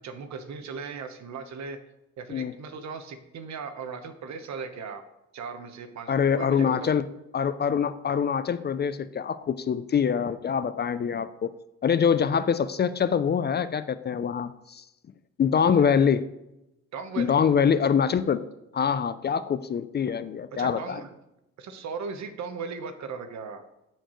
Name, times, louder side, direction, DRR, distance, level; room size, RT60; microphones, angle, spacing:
voice 1, 0.0-1.8 2.2-5.0 5.3-6.9 15.5-15.9 16.9-17.4 20.5-21.1 21.6-23.7, right 5 dB, 65° right, 8 dB, 1.0 m, -37 dB
voice 2, 6.1-7.0 7.3-11.6 11.8-14.8 15.4-16.2 17.2-18.4 18.7-21.0, left 7 dB, 35° left, 14 dB, 0.4 m, -24 dB
13.5 x 4.5 x 3.1 m, 0.88 s
cardioid pair, 90°, 30 cm